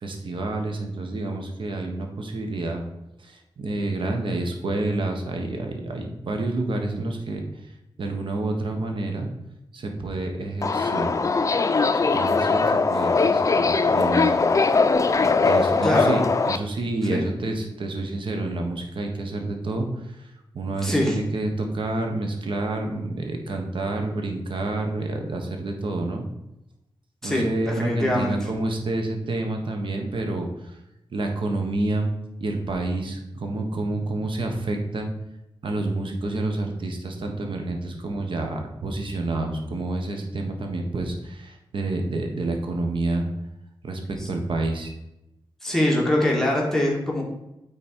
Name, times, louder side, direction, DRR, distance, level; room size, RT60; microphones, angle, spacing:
voice 1, 0.0-2.8 3.6-7.4 8.0-9.3 9.7-11.1 12.1-14.4 15.4-19.9 20.5-26.2 27.2-30.5 31.1-32.1 32.4-35.1 35.6-43.3 43.8-44.9, right 2 dB, 75° right, 3 dB, 1.3 m, -28 dB
Subway metro underground, 10.6-16.6, left 4 dB, 40° left, 0.5 m, -20 dB
voice 2, 15.8-16.1 17.1-17.3 20.8-21.2 27.2-28.5 44.2-44.3 45.6-47.2, left 1 dB, 5° left, -3 dB, 1.9 m, -23 dB
8.9 x 4.1 x 4.6 m, 0.89 s
cardioid pair, 75°, 9 cm